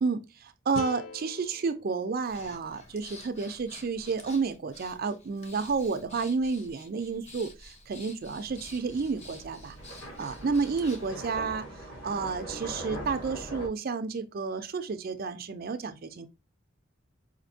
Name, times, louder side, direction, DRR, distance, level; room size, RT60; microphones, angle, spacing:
voice 1, 0.0-9.8 10.2-11.7 12.0-16.3, right 4 dB, 50° right, 0.4 m, -31 dB
sound 1, 0.7-3.8, left 6 dB, 75° left, 0.3 m, -45 dB
Breathing, 2.3-11.2, left 2 dB, 35° left, 0.8 m, -50 dB
sound 2, 8.5-13.7, right 1 dB, 60° left, 2.5 m, -41 dB
5.0 x 2.7 x 2.6 m
head